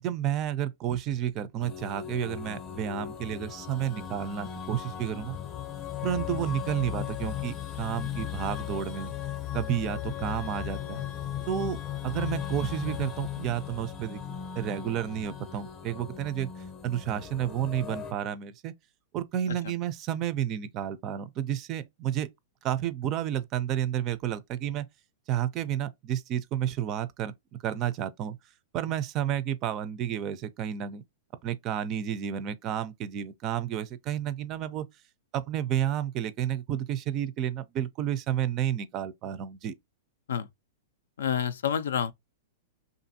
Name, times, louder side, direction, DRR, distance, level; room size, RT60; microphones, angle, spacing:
voice 1, 0.0-5.4 6.0-9.1 9.5-11.0 11.5-11.8 12.0-14.2 14.6-16.5 16.8-18.7 19.1-22.3 22.6-24.9 25.3-28.4 28.7-31.0 31.4-34.9 35.3-39.7, right 10 dB, 35° right, 0.4 m, -31 dB
sound 1, 1.6-18.1, left 10 dB, 25° left, 0.6 m, -37 dB
voice 2, 41.2-42.1, left 8 dB, 85° left, 0.3 m, -28 dB
2.7 x 2.5 x 2.6 m
hypercardioid pair, 125°, 0 cm